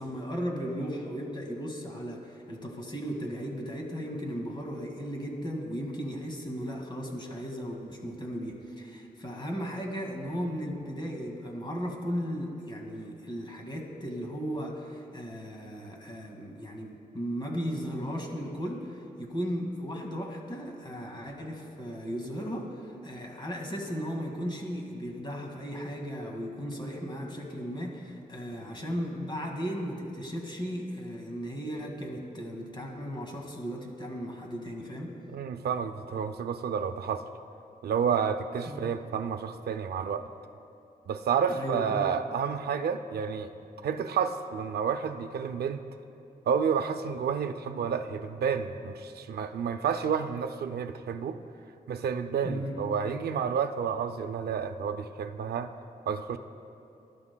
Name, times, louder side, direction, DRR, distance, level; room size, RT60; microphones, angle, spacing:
voice 1, 0.0-35.2 38.7-38.9 41.5-42.1 52.4-52.9, equal, 30° left, 1 dB, 1.9 m, -36 dB
voice 2, 35.3-37.2 37.8-40.3 41.1-43.5 43.8-45.8 46.5-51.4 51.9-55.7 56.1-56.4, right 7 dB, 90° right, 7 dB, 0.5 m, -30 dB
19.5 x 11.5 x 2.2 m, 2.7 s
cardioid pair, 85°, 16 cm